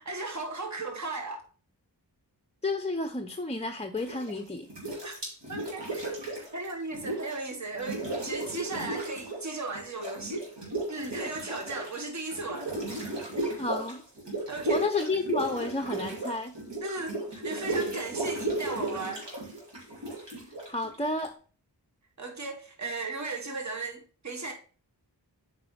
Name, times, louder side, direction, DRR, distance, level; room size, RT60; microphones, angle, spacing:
voice 1, 0.0-1.4 5.0-5.2 5.5-5.8 6.5-10.5 10.9-12.7 14.5-14.9 16.8-19.2 22.2-24.5, right 3 dB, 40° right, 1.4 m, -36 dB
voice 2, 2.6-4.7 13.6-14.0 14.7-16.5 20.7-21.4, left 2 dB, 15° left, 0.5 m, -31 dB
sound 1, 4.0-4.4 4.7-7.5 7.7-9.5 9.7-21.3, right 2 dB, 75° right, 2.8 m, -34 dB
8.2 x 4.7 x 3.2 m
wide cardioid pair, 75°, 42 cm